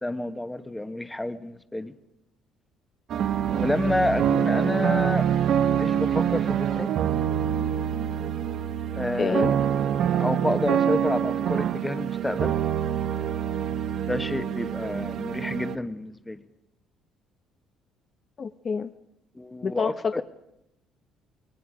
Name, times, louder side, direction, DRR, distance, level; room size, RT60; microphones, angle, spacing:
voice 1, 0.0-1.9 3.5-6.9 8.9-9.6 10.1-12.6 14.1-16.4 19.3-20.2, left 1 dB, 10° left, 10 dB, 1.2 m, -29 dB
sound 1, 3.1-15.8, right 9 dB, 60° right, 1.0 m, -25 dB
voice 2, 9.2-9.5 18.4-18.9 19.6-20.2, left 5 dB, 35° left, 9 dB, 0.7 m, -27 dB
28.5 x 21.0 x 5.1 m, 0.83 s
cardioid pair, 105°, 0 cm